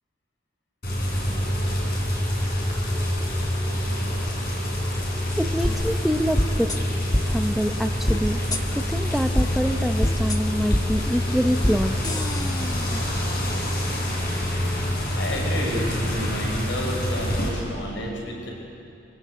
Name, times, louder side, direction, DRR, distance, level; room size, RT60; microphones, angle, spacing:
sound 1, 0.8-17.5, equal, 55° left, 7.7 m, -26 dB
voice 1, 5.4-6.7 7.3-8.4 8.9-11.9, equal, ahead, 6 dB, 1.0 m, -25 dB
sound 2, 5.6-5.7 6.4-6.8 7.1-7.2 8.1-8.2 8.5-8.6 9.4-9.5 10.0-10.4 10.7-10.8 11.6-11.8 12.0-13.0, left 1 dB, 20° left, 1.5 m, -24 dB
voice 2, 15.1-18.5, equal, 75° left, 0 dB, 6.1 m, -30 dB
26.5 x 26.0 x 8.6 m, 2.7 s
head